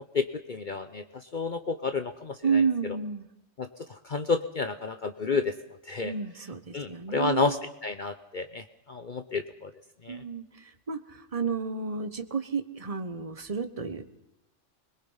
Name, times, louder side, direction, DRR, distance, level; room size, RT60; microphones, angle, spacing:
voice 1, 0.0-3.0 3.6-5.5 5.8-6.1 6.7-9.7 10.0-10.2, left 4 dB, 45° left, 9 dB, 0.9 m, -31 dB
voice 2, 2.4-3.3 6.0-7.5 10.1-14.0, right 5 dB, 30° right, 9 dB, 1.2 m, -31 dB
22.0 x 21.5 x 5.6 m, 0.90 s
omnidirectional pair, 1.3 m